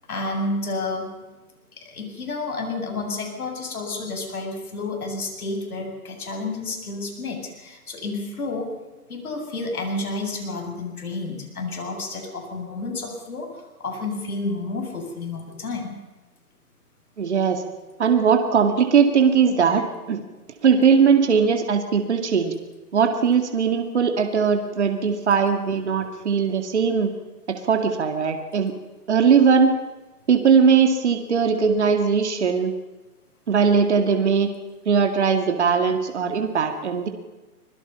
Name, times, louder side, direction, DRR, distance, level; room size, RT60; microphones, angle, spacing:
voice 1, 0.1-1.1 1.8-8.7 9.1-16.0, left 2 dB, 65° left, 3 dB, 7.7 m, -30 dB
voice 2, 17.2-17.6 18.0-20.2 20.6-22.5 22.9-27.1 27.5-28.7 29.1-29.7 30.3-32.7 33.5-34.5 34.9-37.1, right 6 dB, 45° right, 5 dB, 2.2 m, -19 dB
25.5 x 22.0 x 5.7 m, 1.2 s
hypercardioid pair, 180°, 46 cm